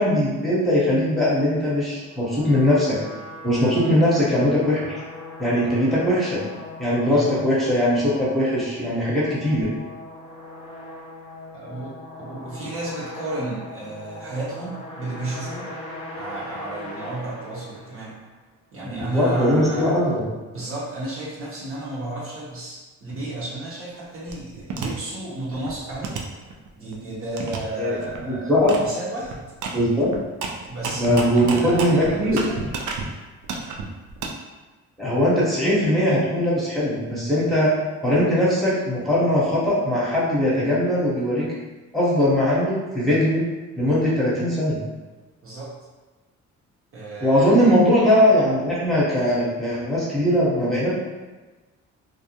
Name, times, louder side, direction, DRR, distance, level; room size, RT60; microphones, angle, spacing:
voice 1, 0.0-3.0 3.4-5.0 5.4-6.4 6.8-9.7 18.8-20.2 27.8-27.9 28.2-28.7 29.7-30.1 31.0-32.4 35.0-37.7 38.0-41.4 41.9-43.4 43.8-44.8 47.2-50.9, equal, ahead, -9 dB, 0.9 m, -20 dB
sound 1, 2.0-18.3, left 2 dB, 20° left, 0.6 m, -39 dB
voice 2, 11.5-11.9 12.2-15.7 16.1-18.2 18.7-20.0 20.5-26.2 26.7-29.5 30.7-32.7 45.4-45.7 46.9-47.7, right 2 dB, 45° right, -7 dB, 0.8 m, -32 dB
sound 2, 24.3-24.9 25.4-26.9 27.4-27.6 27.9-28.2 28.7-28.9 29.1-33.1 33.4-34.3, right 4 dB, 75° right, 0.5 m, -31 dB
2.4 x 2.1 x 2.8 m, 1.2 s
cardioid pair, 90°, 30 cm